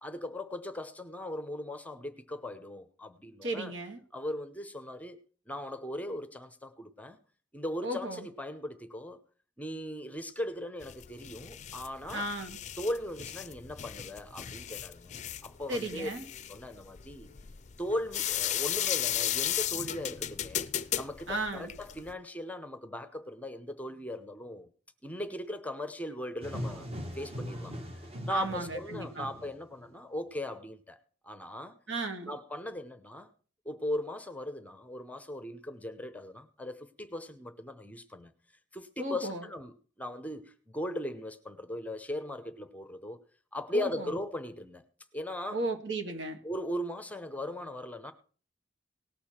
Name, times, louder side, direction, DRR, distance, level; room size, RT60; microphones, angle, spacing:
voice 1, 0.0-3.7 4.1-5.2 5.5-7.2 7.5-9.2 9.6-12.3 12.8-15.1 15.4-16.1 16.5-17.3 17.8-20.7 21.0-24.7 25.0-26.9 27.1-31.0 31.2-31.8 32.3-33.3 33.6-38.3 38.7-43.2 43.5-44.8 45.1-45.6 46.4-48.1, left 1 dB, 10° left, 0.7 m, -38 dB
voice 2, 3.4-4.0 7.8-8.3 12.1-12.6 15.7-16.3 21.3-21.7 28.3-29.3 31.9-32.3 39.0-39.4 43.7-44.1 45.5-46.4, right 2 dB, 75° right, 1.9 m, -35 dB
sound 1, 10.8-22.1, left 11 dB, 35° left, 0.4 m, -35 dB
sound 2, 26.4-29.9, equal, 30° right, 1.4 m, -40 dB
18.5 x 6.8 x 4.4 m
head